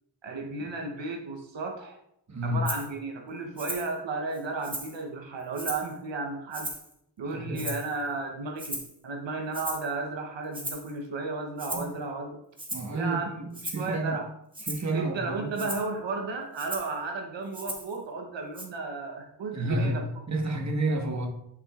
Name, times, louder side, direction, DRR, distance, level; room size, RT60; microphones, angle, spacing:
voice 1, 0.2-2.0 2.4-6.7 7.2-12.4 12.9-13.4 13.7-14.3 14.9-20.0, right 3 dB, 80° right, 3 dB, 1.0 m, -34 dB
voice 2, 2.3-2.6 7.3-7.7 11.7-11.9 12.7-14.2 14.6-15.7 19.5-21.3, right 2 dB, 40° right, 1 dB, 1.4 m, -30 dB
Rattle (instrument), 2.7-2.9 3.6-3.9 4.3-5.0 5.5-5.9 6.5-6.9 7.6-8.0 8.6-9.0 9.5-9.9 10.5-10.9 11.6-11.9 12.6-13.0 13.5-13.9 14.5-14.9 15.6-15.9 16.6-16.9 17.5-18.0 18.6-18.7, right 1 dB, 10° right, 1.4 m, -37 dB
10.5 x 5.9 x 2.4 m, 0.76 s
cardioid pair, 70°, 44 cm